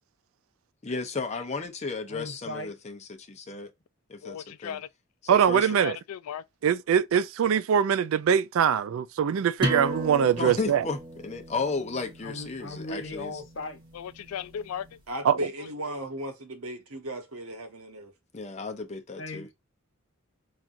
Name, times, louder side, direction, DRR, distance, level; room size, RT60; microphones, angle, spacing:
voice 1, 0.8-3.7 4.1-4.4 4.6-4.8 5.3-5.7 10.4-11.0 11.2-13.4 18.3-19.5, left 4 dB, 30° left, 0.6 m, -33 dB
voice 2, 2.1-2.7 12.2-13.8 19.1-19.5, left 1 dB, 55° left, 1.0 m, -38 dB
voice 3, 4.2-4.9 5.3-6.4 13.9-15.0, left 8 dB, 80° left, 0.3 m, -37 dB
voice 4, 5.3-6.0 6.6-10.8 15.2-15.4, right 8 dB, 65° right, 0.3 m, -23 dB
sound 1, 9.6-15.0, equal, 20° right, 1.0 m, -36 dB
voice 5, 15.1-18.1, right 1 dB, 85° right, 1.1 m, -36 dB
5.8 x 2.5 x 2.5 m
head